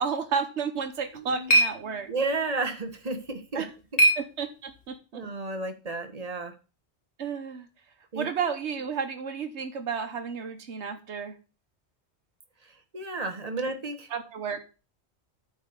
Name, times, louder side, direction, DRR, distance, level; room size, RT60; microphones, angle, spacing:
voice 1, 0.0-2.1 3.5-3.7 4.2-5.2 7.2-7.7 8.2-11.3 14.1-14.6, right 6 dB, 85° right, 5 dB, 1.3 m, -32 dB
sound 1, 0.7-5.0, right 1 dB, 70° left, 1.7 m, -28 dB
voice 2, 1.1-1.5 2.1-3.6 5.1-6.5 8.1-8.3 12.6-14.1, right 3 dB, 35° right, 7 dB, 1.3 m, -32 dB
9.1 x 4.0 x 6.7 m, 0.33 s
omnidirectional pair, 1.1 m